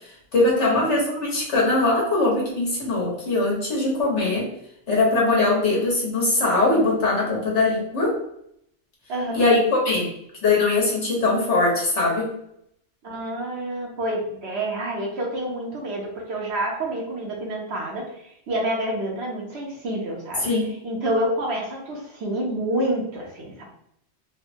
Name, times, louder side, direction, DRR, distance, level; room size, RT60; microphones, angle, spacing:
voice 1, 0.3-4.5 4.9-8.2 9.3-10.1 10.4-12.3 20.4-20.7, left 2 dB, 75° left, -4 dB, 1.3 m, -21 dB
voice 2, 9.1-9.5 13.0-18.1 18.5-20.5 20.8-23.6, right 1 dB, 65° right, -1 dB, 1.0 m, -28 dB
3.4 x 2.1 x 2.7 m, 0.72 s
omnidirectional pair, 1.2 m